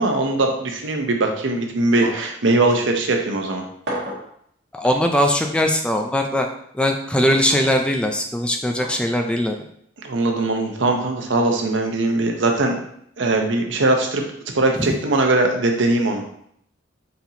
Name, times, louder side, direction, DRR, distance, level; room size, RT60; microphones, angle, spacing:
voice 1, 0.0-3.6 10.0-12.8 13.2-14.2 14.5-16.2, right 2 dB, 85° right, 3 dB, 0.8 m, -20 dB
sound 1, 2.0-2.4 2.7-2.8 3.9-4.3 5.4-5.6 7.3-7.7 8.8-9.0 10.2-10.4, right 1 dB, 65° right, 1.1 m, -32 dB
voice 2, 4.7-6.5 6.7-9.5 14.8-15.0, equal, 5° left, 3 dB, 0.3 m, -20 dB
4.3 x 4.0 x 2.8 m, 0.68 s
head